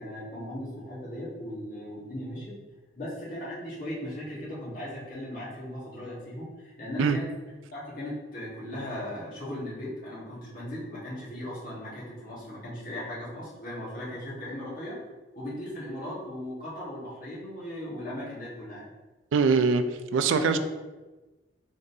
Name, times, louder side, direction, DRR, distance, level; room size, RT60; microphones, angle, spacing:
voice 1, 0.0-2.5 3.0-7.3 7.7-15.0 15.3-18.9 20.4-20.6, left 1 dB, 45° left, -7 dB, 1.4 m, -37 dB
voice 2, 19.3-20.6, right 5 dB, 85° right, 10 dB, 0.3 m, -23 dB
3.8 x 3.6 x 2.7 m, 1.2 s
head